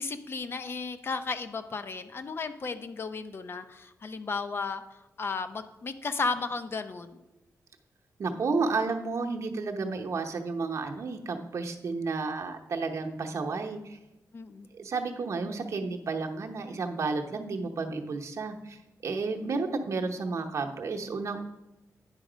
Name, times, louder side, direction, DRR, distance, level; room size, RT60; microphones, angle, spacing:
voice 1, 0.0-4.8 5.2-7.2 14.3-14.7 19.4-19.6, left 4 dB, 40° left, 11 dB, 0.6 m, -34 dB
voice 2, 8.2-14.0 14.7-21.4, right 4 dB, 60° right, 3 dB, 0.8 m, -32 dB
9.8 x 5.2 x 5.0 m, 0.99 s
wide cardioid pair, 130°, 6 cm